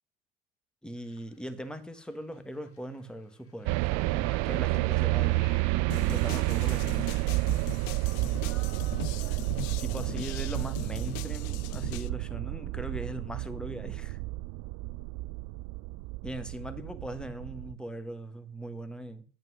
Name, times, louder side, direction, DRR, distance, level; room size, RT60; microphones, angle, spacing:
voice 1, 0.8-5.6 5.9-7.0 9.7-14.2 16.2-19.2, right 1 dB, 5° left, 1.5 m, -40 dB
sound 1, 1.0-12.1, left 6 dB, 40° left, 2.6 m, -61 dB
sound 2, 3.7-17.7, right 21 dB, 50° right, 0.5 m, -30 dB
sound 3, 5.9-12.1, left 12 dB, 60° left, 0.8 m, -41 dB
voice 2, 8.4-10.1 16.6-16.8, left 5 dB, 85° left, 2.0 m, -54 dB
10.5 x 5.6 x 6.2 m
hypercardioid pair, 70°, 34 cm